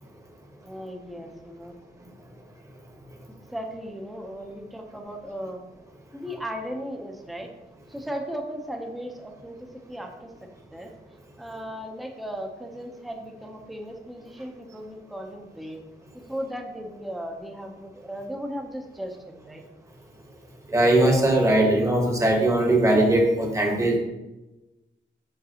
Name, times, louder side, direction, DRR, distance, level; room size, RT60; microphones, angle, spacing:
voice 1, 0.6-1.8 3.5-5.6 6.1-7.5 7.9-10.9 11.4-15.8 16.1-19.6, equal, ahead, 2 dB, 0.7 m, -36 dB
voice 2, 20.7-24.0, right 1 dB, 15° right, 0 dB, 1.1 m, -20 dB
7.7 x 5.9 x 2.9 m, 1.0 s
wide cardioid pair, 160°, 20 cm